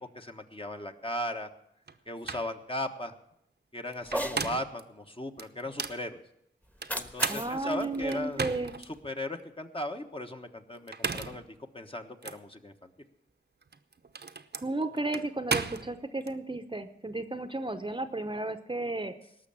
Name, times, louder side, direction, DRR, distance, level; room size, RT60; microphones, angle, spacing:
voice 1, 0.1-1.5 2.1-3.1 3.7-6.2 6.9-8.4 8.8-12.9, left 1 dB, 25° left, 5 dB, 1.3 m, -37 dB
sound 1, 1.9-2.0 2.3-2.5 3.9-4.8 5.4-6.0 6.8-8.9 9.4-9.5 10.8-11.5 12.2-12.4 13.6-16.3, right 5 dB, 55° right, 0.8 m, -35 dB
Cat, 4.0-4.4 6.6-9.0, equal, 10° left, 1.3 m, -37 dB
voice 2, 7.3-8.7 14.6-19.1, right 2 dB, 25° right, 10 dB, 0.9 m, -33 dB
18.5 x 6.5 x 8.7 m, 0.77 s
wide cardioid pair, 55°, 20 cm